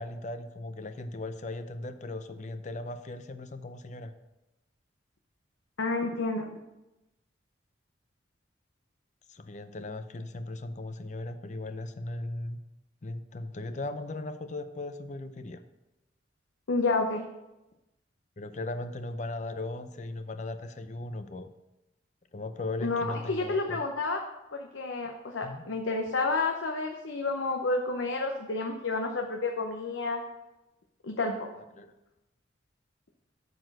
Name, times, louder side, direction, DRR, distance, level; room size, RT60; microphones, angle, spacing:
voice 1, 0.0-4.1 9.3-12.6 13.0-15.6 18.4-21.5 22.3-23.8 25.4-25.7 31.5-32.0, left 2 dB, 40° left, 10 dB, 0.5 m, -38 dB
voice 2, 5.8-6.5 16.7-17.2 22.8-24.2 24.5-30.2 31.0-31.4, left 3 dB, 85° left, 3 dB, 0.7 m, -30 dB
8.8 x 4.3 x 6.5 m, 0.97 s
head